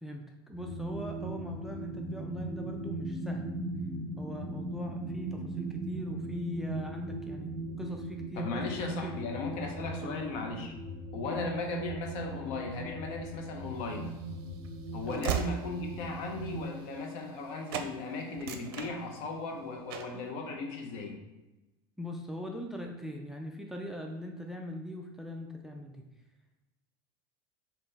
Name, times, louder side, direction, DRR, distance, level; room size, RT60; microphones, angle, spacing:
voice 1, 0.0-3.4 4.2-9.1 10.0-10.2 11.2-11.4 15.1-15.3 22.0-26.1, left 1 dB, 5° right, 2 dB, 0.3 m, -40 dB
sound 1, 0.5-16.6, right 2 dB, 35° right, 1.1 m, -39 dB
voice 2, 8.4-10.7 11.1-14.1 14.9-21.2, left 2 dB, 60° left, 2 dB, 0.9 m, -36 dB
Train / Slam, 13.8-17.4 17.7-17.9 18.3-19.5 19.9-20.2, right 7 dB, 75° right, 0.5 m, -38 dB
3.7 x 2.9 x 4.1 m, 1.0 s
supercardioid pair, 135°, 12 cm